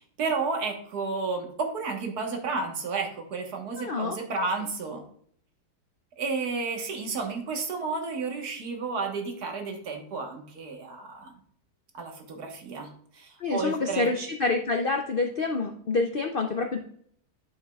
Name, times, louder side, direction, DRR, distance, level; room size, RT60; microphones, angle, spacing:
voice 1, 0.0-5.0 6.2-11.3 11.9-14.1, right 4 dB, 65° right, 3 dB, 1.8 m, -32 dB
voice 2, 3.8-4.2 13.4-16.8, left 3 dB, 80° left, 4 dB, 0.5 m, -27 dB
8.8 x 7.4 x 2.3 m, 0.63 s
omnidirectional pair, 1.8 m